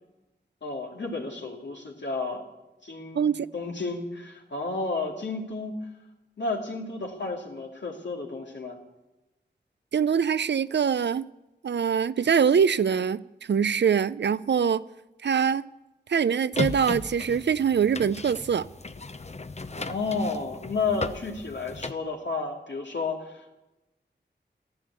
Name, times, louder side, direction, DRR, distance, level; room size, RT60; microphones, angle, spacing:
voice 1, 0.6-2.4 2.8-3.3 3.5-5.8 6.4-8.8 19.8-23.6, left 3 dB, 85° left, 2.6 m, -32 dB
voice 2, 3.1-3.5 9.9-11.3 11.6-13.2 13.5-14.8 15.2-15.6 16.1-18.7, right 7 dB, 80° right, 0.5 m, -23 dB
sound 1, 16.5-21.9, left 3 dB, 40° left, 0.7 m, -36 dB
14.0 x 11.5 x 8.3 m
wide cardioid pair, 60°, 18 cm